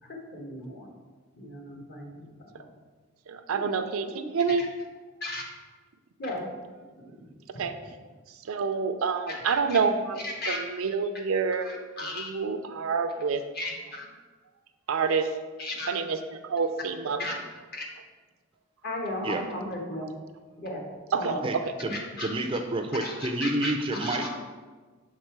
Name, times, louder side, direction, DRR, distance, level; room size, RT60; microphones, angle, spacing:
voice 1, 0.0-0.9 1.3-2.7 3.5-3.8 4.1-4.3 5.2-5.4 6.2-6.5 6.9-7.1 9.3-9.8 10.2-10.6 11.6-12.3 13.5-14.1 15.6-15.9 17.2-17.3 17.7-17.9 18.8-20.1 20.6-21.4 22.2-22.3 23.0-24.3, left 1 dB, 50° left, 0 dB, 1.2 m, -36 dB
voice 2, 3.3-4.7 7.5-7.8 8.3-13.4 14.9-15.4 15.9-17.3 21.1-21.7, right 5 dB, 85° right, 8 dB, 0.5 m, -28 dB
voice 3, 21.8-24.3, right 2 dB, 25° right, 5 dB, 0.4 m, -29 dB
6.5 x 3.6 x 4.6 m, 1.4 s
head